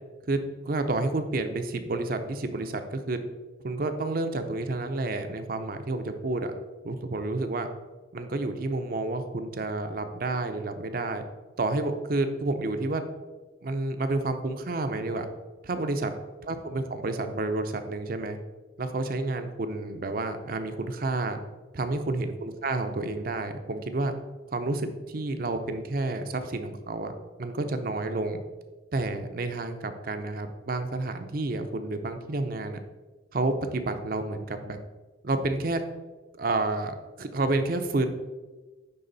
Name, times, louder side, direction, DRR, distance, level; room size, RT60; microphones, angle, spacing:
voice 1, 0.3-3.2 3.6-6.5 6.8-7.7 8.1-11.2 11.6-13.0 13.6-15.3 15.6-16.1 16.4-18.4 18.8-21.4 21.7-24.1 24.5-27.1 27.4-28.4 28.9-32.8 33.3-34.8 35.2-35.8 36.4-38.1, right 2 dB, 50° right, 7 dB, 0.6 m, -30 dB
9.6 x 3.6 x 4.0 m, 1.3 s
head